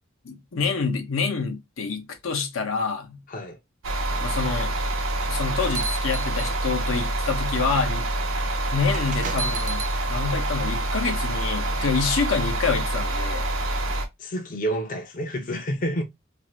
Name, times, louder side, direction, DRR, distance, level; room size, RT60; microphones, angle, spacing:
voice 1, 0.2-3.2 4.2-4.8 5.3-8.1 8.7-9.8 10.1-13.5, left 5 dB, 80° left, 0.7 m, -27 dB
voice 2, 3.3-3.6 14.2-16.0, equal, 40° left, 0.5 m, -29 dB
sound 1, 3.8-14.1, right 1 dB, 85° right, 0.8 m, -26 dB
sound 2, 5.2-7.0 7.7-7.9 8.9-9.9, right 3 dB, 40° right, 0.5 m, -34 dB
2.6 x 2.5 x 3.0 m
head